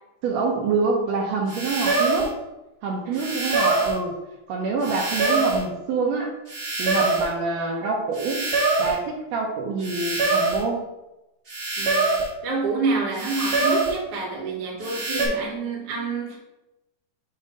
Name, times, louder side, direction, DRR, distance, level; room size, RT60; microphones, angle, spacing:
voice 1, 0.2-2.3 2.8-4.1 4.5-6.3 6.8-8.4 8.8-10.8, right 4 dB, 75° right, 0 dB, 1.6 m, -26 dB
sound 1, 1.5-2.3 3.1-4.0 4.8-5.6 6.5-7.3 8.1-9.0 9.8-10.6 11.5-12.3 13.1-14.0 14.8-15.3, right 3 dB, 35° right, 1.1 m, -24 dB
voice 2, 3.1-3.4 11.8-12.2 12.4-16.4, right 3 dB, 55° right, -5 dB, 1.8 m, -28 dB
7.4 x 2.6 x 5.0 m, 0.95 s
omnidirectional pair, 3.8 m